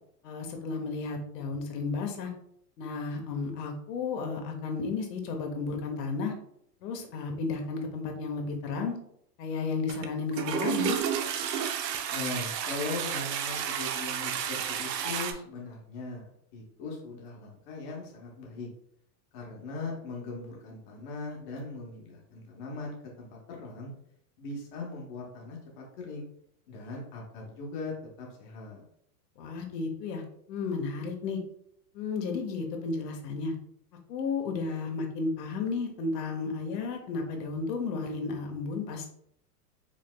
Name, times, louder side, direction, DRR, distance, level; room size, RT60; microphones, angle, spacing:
voice 1, 0.2-2.3 2.8-6.3 6.8-9.0 9.4-11.0 29.4-30.2 30.5-31.4 31.9-33.5 34.1-39.1, left 4 dB, 85° left, 3 dB, 1.0 m, -33 dB
Toilet flush, 9.9-10.1 10.3-15.3, right 8 dB, 90° right, 0.7 m, -31 dB
voice 2, 12.1-18.7 19.3-23.9 24.4-26.3 26.7-28.8, left 3 dB, 30° left, -2 dB, 0.8 m, -39 dB
5.0 x 3.2 x 2.2 m, 0.70 s
supercardioid pair, 170°, 48 cm